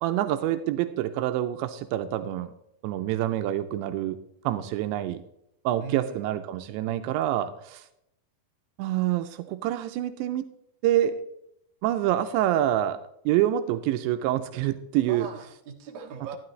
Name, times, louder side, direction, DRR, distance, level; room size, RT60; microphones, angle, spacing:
voice 1, 0.0-2.5 2.8-4.2 4.4-5.2 5.7-7.8 8.8-10.4 10.8-11.2 11.8-13.0 13.3-15.3, right 12 dB, 85° right, 9 dB, 2.8 m, -26 dB
voice 2, 5.8-6.3 15.0-16.4, right 6 dB, 55° right, 0 dB, 2.4 m, -39 dB
12.5 x 11.5 x 3.2 m, 0.76 s
omnidirectional pair, 5.2 m